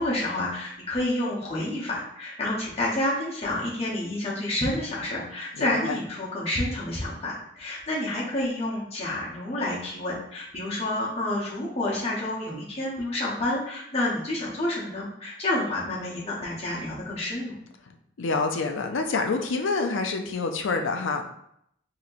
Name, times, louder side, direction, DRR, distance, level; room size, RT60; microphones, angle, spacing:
voice 1, 0.0-17.6, left 1 dB, 30° left, -6 dB, 1.0 m, -29 dB
voice 2, 5.6-6.0 18.2-21.2, left 4 dB, 75° left, 4 dB, 0.5 m, -27 dB
4.2 x 2.9 x 2.5 m, 0.72 s
head